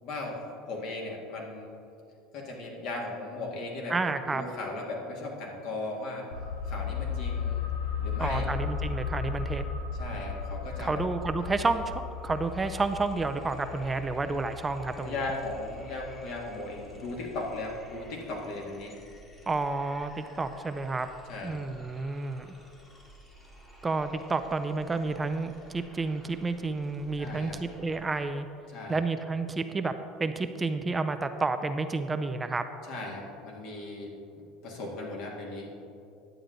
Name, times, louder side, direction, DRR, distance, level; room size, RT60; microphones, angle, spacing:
voice 1, 0.0-1.7 2.3-3.9 4.3-6.3 6.7-7.6 8.0-8.5 9.9-11.0 14.3-14.4 15.0-18.9 21.3-21.6 27.2-27.6 28.7-29.0 32.9-34.1 34.4-35.7, left 2 dB, 65° left, -1 dB, 2.1 m, -37 dB
voice 2, 3.9-4.4 8.2-9.6 10.8-15.2 19.5-21.1 21.4-22.5 23.8-28.5 28.9-29.9 30.2-32.6, right 3 dB, 15° right, 9 dB, 0.4 m, -30 dB
sound 1, 6.3-17.7 18.0-18.1, left 6 dB, 80° left, 0.9 m, -36 dB
sound 2, 11.0-11.1 11.4-28.0, equal, 20° left, 1.4 m, -54 dB
10.5 x 7.9 x 3.9 m, 2.6 s
supercardioid pair, 115°, 0 cm